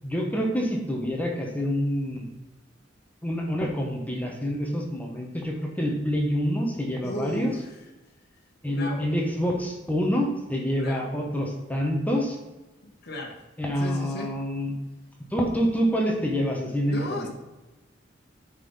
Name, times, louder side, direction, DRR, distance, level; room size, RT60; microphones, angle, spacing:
voice 1, 0.0-2.3 3.2-7.5 8.6-12.4 13.6-14.7 15.3-17.3, equal, 10° left, 0 dB, 1.2 m, -27 dB
voice 2, 7.0-7.7 8.7-9.1 10.8-11.2 12.8-13.4 13.8-14.3 16.9-17.3, left 1 dB, 55° left, 0 dB, 1.5 m, -35 dB
9.9 x 4.2 x 5.5 m, 1.1 s
head